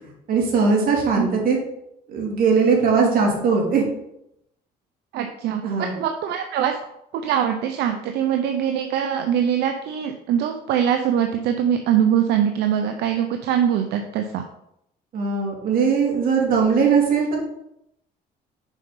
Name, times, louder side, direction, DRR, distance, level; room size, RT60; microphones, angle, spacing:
voice 1, 0.3-1.6 2.1-3.8 5.6-5.9 15.1-17.4, right 5 dB, 60° right, -1 dB, 2.8 m, -19 dB
voice 2, 5.1-6.8 7.1-14.5, right 9 dB, 80° right, 6 dB, 0.7 m, -22 dB
6.3 x 5.3 x 5.4 m, 0.79 s
cardioid pair, 110°, 17 cm